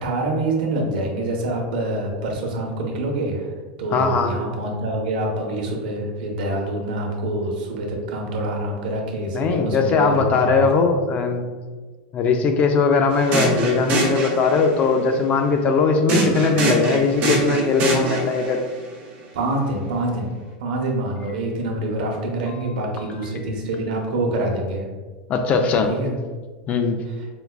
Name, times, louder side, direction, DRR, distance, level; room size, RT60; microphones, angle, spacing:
voice 1, 0.0-3.5 3.8-10.7 19.3-20.3 20.6-24.8 25.9-26.1, right 1 dB, 85° right, 1 dB, 0.7 m, -26 dB
voice 2, 3.9-4.4 9.3-11.5 12.1-18.6 22.5-22.6 23.0-23.1 25.3-25.9 26.7-27.0, left 4 dB, 30° left, 6 dB, 0.3 m, -20 dB
sound 1, 13.1-14.8 16.1-18.6, right 3 dB, 40° right, 0.7 m, -24 dB
4.6 x 2.2 x 2.3 m, 1.4 s
supercardioid pair, 150°, 5 cm